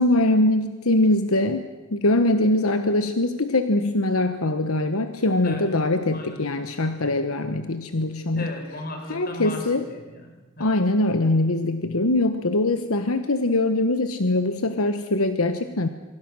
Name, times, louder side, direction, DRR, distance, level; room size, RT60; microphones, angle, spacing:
voice 1, 0.0-1.6 1.9-8.5 9.1-9.9 10.6-15.9, left 2 dB, 80° left, 8 dB, 1.2 m, -22 dB
voice 2, 6.1-6.5 8.4-10.8, left 1 dB, 40° left, 4 dB, 4.4 m, -36 dB
27.5 x 24.0 x 6.3 m, 1.2 s
head